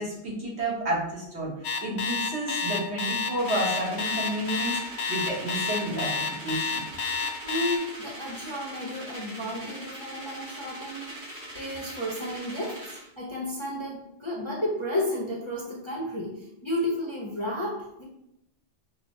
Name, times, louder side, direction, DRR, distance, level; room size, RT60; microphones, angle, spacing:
voice 1, 0.0-1.5 1.8-6.1 6.4-6.8, right 1 dB, 65° right, -5 dB, 1.6 m, -30 dB
Alarm, 1.6-7.8, left 5 dB, 70° left, 0.8 m, -29 dB
sound 1, 3.3-13.1, equal, 35° right, 1.4 m, -42 dB
voice 2, 7.4-18.0, left 1 dB, 35° left, -5 dB, 0.6 m, -32 dB
5.7 x 2.1 x 3.1 m, 0.83 s
omnidirectional pair, 1.2 m